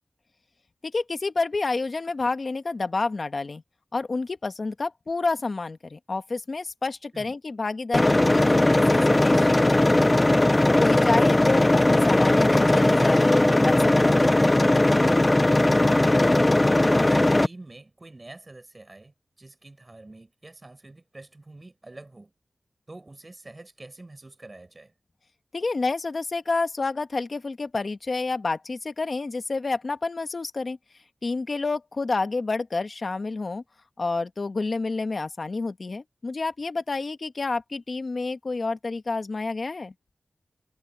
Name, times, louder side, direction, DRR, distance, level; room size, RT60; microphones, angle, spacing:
voice 1, 0.8-3.6 3.9-9.8 10.8-13.3 13.6-14.2 25.5-30.8 31.2-33.6 34.0-39.9, left 3 dB, 60° left, 1.4 m, -29 dB
sound 1, 7.9-17.5, left 1 dB, 25° left, 0.6 m, -19 dB
voice 2, 15.9-22.3 22.9-24.9, right 2 dB, 35° right, 7.6 m, -46 dB
cardioid pair, 50°, 0 cm